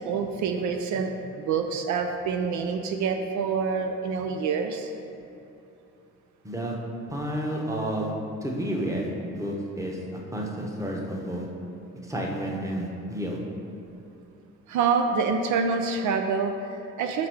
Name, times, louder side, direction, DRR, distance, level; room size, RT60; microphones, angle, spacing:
voice 1, 0.0-4.9 14.7-17.3, right 5 dB, 75° right, 5 dB, 0.5 m, -27 dB
voice 2, 7.1-8.1 8.4-10.0 10.3-11.5 12.0-13.4, right 1 dB, 10° right, -1 dB, 0.9 m, -30 dB
5.9 x 3.6 x 4.7 m, 2.8 s
cardioid pair, 90°, 30 cm